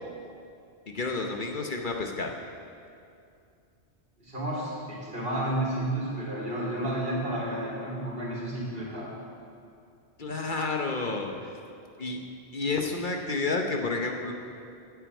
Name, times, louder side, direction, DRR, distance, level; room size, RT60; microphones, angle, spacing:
voice 1, 0.9-2.3 10.2-11.3 12.0-12.2 12.5-14.3, left 3 dB, 50° left, 2 dB, 1.1 m, -30 dB
voice 2, 4.2-9.1, right 1 dB, 60° right, -5 dB, 3.5 m, -31 dB
9.6 x 9.6 x 8.2 m, 2.5 s
omnidirectional pair, 1.1 m